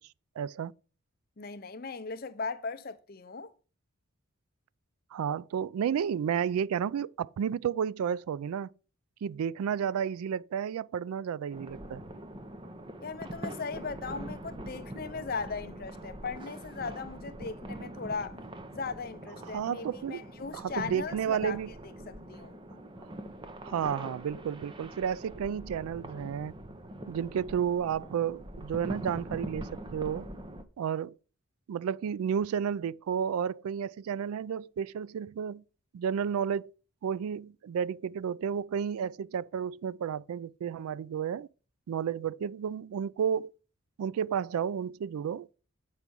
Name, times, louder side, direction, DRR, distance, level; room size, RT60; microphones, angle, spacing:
voice 1, 0.4-0.7 5.1-8.7 9.2-12.0 19.4-20.2 20.5-21.7 23.6-26.5 27.1-30.3 30.8-31.1 31.7-35.6 35.9-36.7 37.0-41.5 41.9-43.6 44.0-45.5, right 8 dB, 85° right, 0.3 m, -32 dB
voice 2, 1.4-3.5 13.0-18.4 18.7-22.6, left 4 dB, 45° left, 0.6 m, -38 dB
sound 1, 11.5-30.6, right 1 dB, 20° right, 0.6 m, -43 dB
7.4 x 4.7 x 5.3 m
head